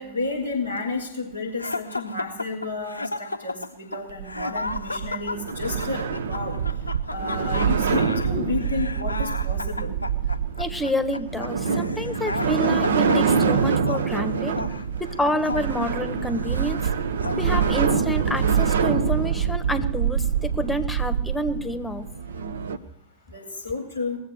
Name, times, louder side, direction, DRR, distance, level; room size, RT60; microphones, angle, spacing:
voice 1, 0.0-6.0 6.3-6.5 7.1-9.9 23.3-24.2, left 3 dB, 90° right, 0 dB, 6.7 m, -31 dB
sound 1, 1.6-16.8 17.2-17.9, left 3 dB, 80° left, 0.5 m, -34 dB
sound 2, 4.1-22.8, right 6 dB, 65° right, 0.7 m, -25 dB
voice 2, 10.6-14.6 15.0-16.8 17.4-22.0, equal, 5° left, 11 dB, 1.2 m, -28 dB
21.0 x 7.9 x 6.6 m, 0.78 s
figure-of-eight pair, 90°, 0 cm